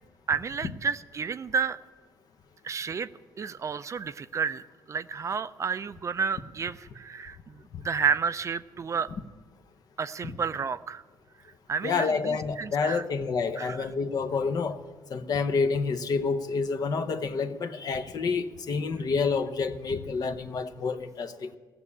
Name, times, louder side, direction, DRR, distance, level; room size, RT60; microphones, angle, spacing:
voice 1, 0.3-1.8 2.6-3.1 3.4-9.1 10.0-11.0 11.7-13.0 13.6-13.9, right 6 dB, 40° right, 13 dB, 0.5 m, -31 dB
voice 2, 11.8-14.8 15.1-21.5, left 4 dB, 50° left, 8 dB, 0.9 m, -28 dB
16.0 x 7.1 x 9.8 m, 1.4 s
cardioid pair, 85°, 8 cm